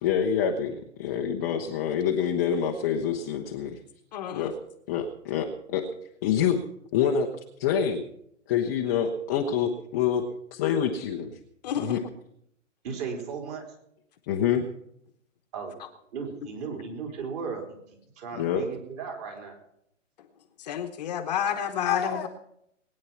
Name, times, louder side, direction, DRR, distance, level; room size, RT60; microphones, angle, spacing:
voice 1, 0.0-3.8 4.3-4.5 4.9-5.8 6.2-6.6 6.9-7.3 7.6-8.0 8.5-10.2 10.5-11.3 11.8-12.0 14.3-14.6 18.3-18.6 21.9-22.3, left 8 dB, 15° left, 1 dB, 0.6 m, -26 dB
voice 2, 4.1-4.5 11.6-12.0 20.6-22.3, left 8 dB, 30° left, 6 dB, 1.1 m, -30 dB
voice 3, 12.8-13.6 15.5-15.8 16.1-17.8 18.2-19.6, right 5 dB, 30° right, 2 dB, 4.2 m, -35 dB
21.0 x 9.6 x 5.8 m, 0.74 s
hypercardioid pair, 150°, 39 cm